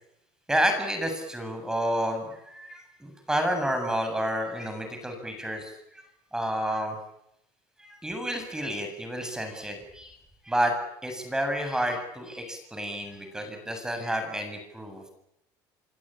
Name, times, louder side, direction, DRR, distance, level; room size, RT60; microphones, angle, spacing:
voice 1, 0.5-7.0 7.8-10.2 10.4-10.7 11.0-15.0, equal, 5° right, 6 dB, 7.7 m, -30 dB
26.0 x 25.0 x 9.0 m, 0.81 s
supercardioid pair, 115°, 9 cm